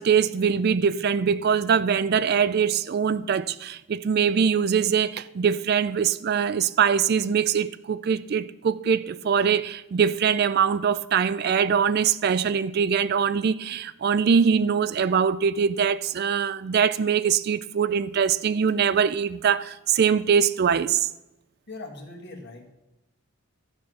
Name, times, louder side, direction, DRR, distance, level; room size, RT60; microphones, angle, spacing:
voice 1, 0.0-21.1, right 7 dB, 45° right, 0.3 m, -23 dB
voice 2, 21.7-22.7, left 2 dB, 50° left, 1.9 m, -40 dB
13.0 x 7.1 x 6.2 m
head